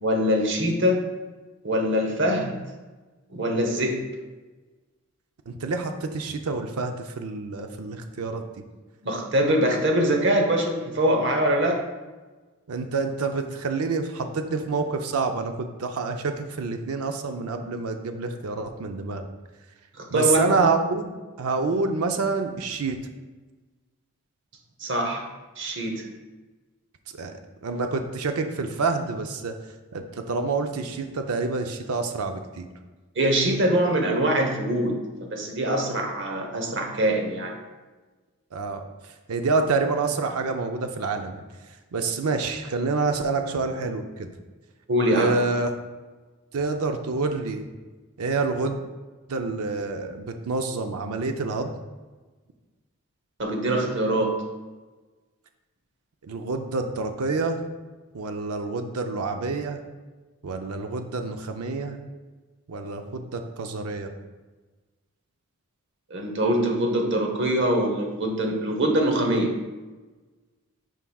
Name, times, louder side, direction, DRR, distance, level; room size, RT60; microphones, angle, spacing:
voice 1, 0.0-1.1 1.6-2.6 3.3-4.0 9.0-11.8 20.0-20.4 24.8-25.3 25.6-26.0 33.2-37.5 44.9-45.4 53.4-54.4 66.1-69.6, right 1 dB, 55° right, 2 dB, 0.9 m, -23 dB
voice 2, 5.5-8.4 12.7-19.2 20.1-21.1 21.4-23.0 27.2-27.3 27.6-29.5 29.9-32.7 38.5-38.8 39.3-41.4 41.9-44.3 45.1-45.7 46.5-47.7 48.2-48.8 49.3-51.7 56.2-57.6 58.1-59.8 60.4-62.0 62.7-64.1, right 4 dB, 85° right, 6 dB, 0.5 m, -27 dB
9.0 x 4.7 x 2.3 m, 1.3 s
head